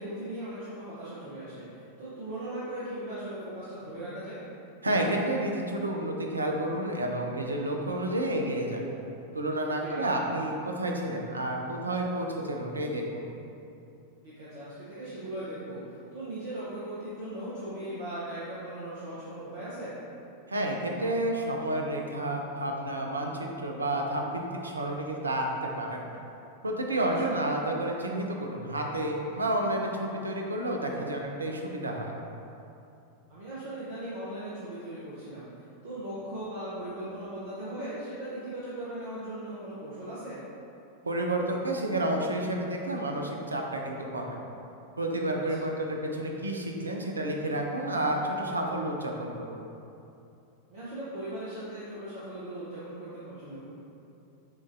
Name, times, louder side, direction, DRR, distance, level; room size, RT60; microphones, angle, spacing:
voice 1, 0.0-4.4 9.8-10.0 14.2-19.9 27.1-27.4 33.3-35.5 35.8-40.4 45.3-45.7 50.7-53.7, right 1 dB, 55° right, -10 dB, 0.9 m, -38 dB
voice 2, 4.8-8.8 9.3-13.3 20.5-26.0 26.6-32.1 41.0-44.4 45.0-49.6, right 1 dB, 75° right, 1 dB, 0.5 m, -30 dB
7.1 x 2.5 x 2.7 m, 2.7 s
figure-of-eight pair, 90°, 0 cm